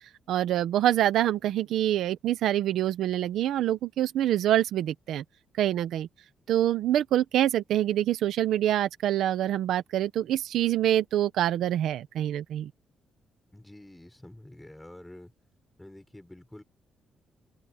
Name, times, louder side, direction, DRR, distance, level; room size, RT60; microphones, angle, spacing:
voice 1, 0.3-5.2 5.6-6.1 6.5-12.7, right 12 dB, 80° right, 1.2 m, -25 dB
voice 2, 13.5-15.3 15.8-16.6, left 1 dB, 5° left, 4.5 m, -48 dB
cardioid pair, 150°, 0 cm